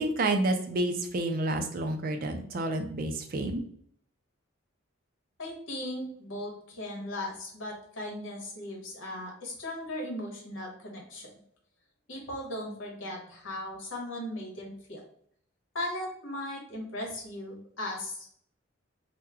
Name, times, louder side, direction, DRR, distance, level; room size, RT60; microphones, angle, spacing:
voice 1, 0.0-3.6, right 2 dB, 45° right, 6 dB, 0.4 m, -29 dB
voice 2, 5.4-11.3 12.1-15.0 15.7-18.3, left 1 dB, 70° left, -1 dB, 1.1 m, -37 dB
3.0 x 2.1 x 3.5 m, 0.62 s
head